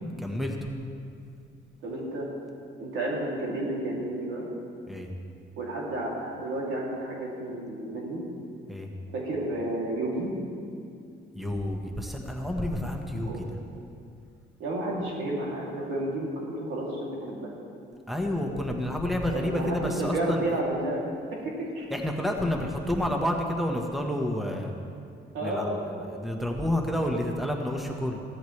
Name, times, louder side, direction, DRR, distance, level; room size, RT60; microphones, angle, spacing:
voice 1, 0.2-0.7 4.9-5.1 8.7-8.9 11.3-13.5 18.1-20.6 21.9-24.7 25.4-28.2, left 1 dB, ahead, 2 dB, 1.4 m, -29 dB
voice 2, 1.8-2.3 2.8-4.5 5.6-8.2 9.1-10.4 13.2-13.4 14.6-17.5 19.3-21.9 25.3-25.8, right 1 dB, 90° right, -4 dB, 2.9 m, -31 dB
15.5 x 13.0 x 3.3 m, 2.4 s
cardioid pair, 90°, 20 cm